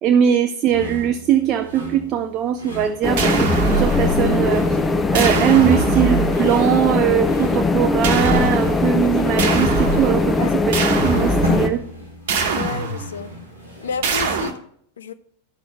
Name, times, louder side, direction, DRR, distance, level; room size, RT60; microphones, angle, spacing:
voice 1, 0.0-4.8 5.1-11.8, right 9 dB, 35° right, 9 dB, 0.4 m, -20 dB
sound 1, 0.7-14.1, equal, 90° left, 2.1 m, -35 dB
sound 2, 3.0-11.7, left 3 dB, 15° left, 0.7 m, -20 dB
sound 3, 3.2-4.7 5.1-6.7 8.0-9.0 9.4-10.3 10.7-11.7 12.3-13.3 14.0-14.5, right 4 dB, 55° right, 1.1 m, -23 dB
voice 2, 12.6-13.3 13.8-14.6 15.0-15.1, left 7 dB, 65° left, 11 dB, 0.5 m, -30 dB
12.0 x 6.1 x 3.3 m, 0.64 s
figure-of-eight pair, 90°, 0 cm